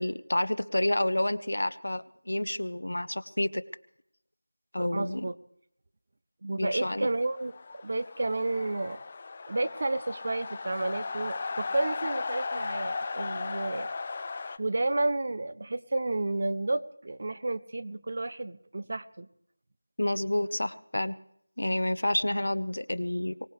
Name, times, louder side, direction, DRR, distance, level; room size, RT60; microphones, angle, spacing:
voice 1, 0.0-3.6 4.7-5.2 6.6-7.1 20.0-21.1 21.6-23.3, left 1 dB, 80° left, 14 dB, 0.9 m, -29 dB
voice 2, 4.8-5.3 6.4-7.5 7.8-9.0 9.5-13.9 14.6-19.3, right 2 dB, 40° right, 15 dB, 0.7 m, -31 dB
sound 1, 6.9-14.6, left 4 dB, 25° left, 0.5 m, -36 dB
23.5 x 18.0 x 3.3 m, 0.73 s
figure-of-eight pair, 175°, 0 cm